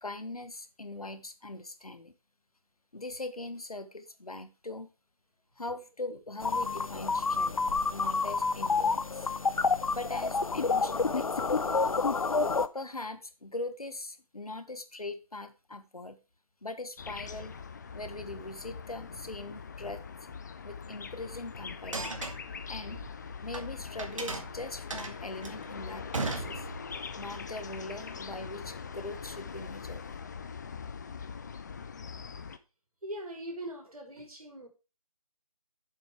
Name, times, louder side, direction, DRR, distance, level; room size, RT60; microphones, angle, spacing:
voice 1, 0.0-2.1 2.9-4.9 5.6-7.6 7.9-9.3 9.9-11.8 12.7-16.2 16.6-17.5 17.9-20.0 20.6-22.2 22.7-23.0 23.4-26.7 27.2-30.0, left 2 dB, 85° left, 1.4 m, -41 dB
sound 1, 6.4-12.7, left 4 dB, 70° left, 0.7 m, -28 dB
sound 2, 17.0-32.6, left 6 dB, 30° left, 0.6 m, -42 dB
sound 3, 21.8-23.6 24.0-27.1, right 3 dB, 60° right, 1.9 m, -37 dB
voice 2, 33.0-34.7, right 1 dB, 80° right, 3.7 m, -41 dB
7.5 x 6.8 x 4.9 m
figure-of-eight pair, 155°, 19 cm